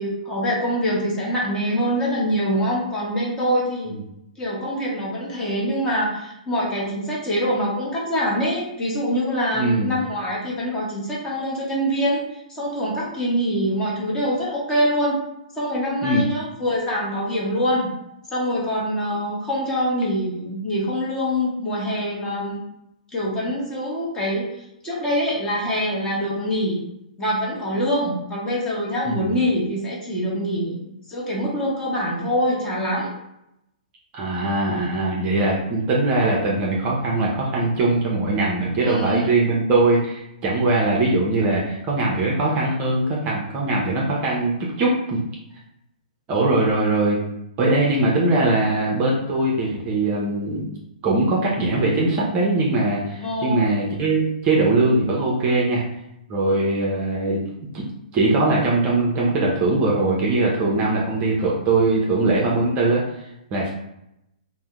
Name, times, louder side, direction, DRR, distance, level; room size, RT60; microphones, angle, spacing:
voice 1, 0.0-3.9 4.4-15.2 15.6-17.9 18.3-22.6 23.1-24.5 24.8-26.8 27.2-30.8 31.1-33.1 38.8-39.4 53.2-53.7, equal, 15° left, -5 dB, 0.9 m, -24 dB
voice 2, 9.5-9.9 16.0-16.2 29.1-29.3 34.1-45.2 46.3-47.2 47.6-50.7 51.0-55.8 56.3-57.4 57.7-57.9 58.1-63.7, right 2 dB, 25° right, -3 dB, 0.6 m, -21 dB
2.6 x 2.1 x 3.5 m, 0.83 s
figure-of-eight pair, 115°, 4 cm